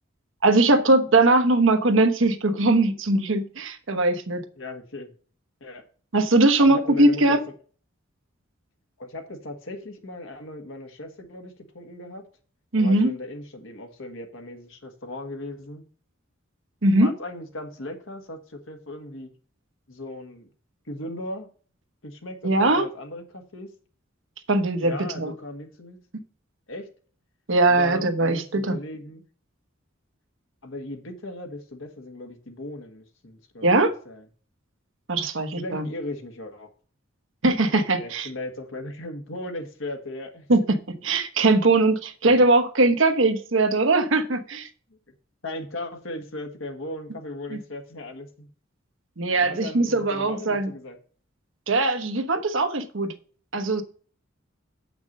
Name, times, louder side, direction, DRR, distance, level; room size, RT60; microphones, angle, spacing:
voice 1, 0.4-4.4 6.1-7.4 12.7-13.1 16.8-17.1 22.4-22.9 24.5-25.3 27.5-28.8 33.6-33.9 35.1-35.9 37.4-38.3 40.5-44.7 47.5-47.6 49.2-50.7 51.7-53.1 53.5-53.8, right 2 dB, 70° right, 7 dB, 1.1 m, -20 dB
voice 2, 4.6-5.1 5.6-5.8 6.6-7.4 9.0-12.2 12.8-15.8 17.0-19.3 19.9-20.5 20.9-21.5 22.0-23.7 24.8-26.0 26.7-26.9 27.7-29.2 30.6-34.2 35.6-36.7 38.0-40.5 42.2-42.4 44.9-45.0 45.4-48.5 49.3-51.0, left 1 dB, 75° left, 5 dB, 1.5 m, -37 dB
7.5 x 5.9 x 5.3 m, 0.42 s
head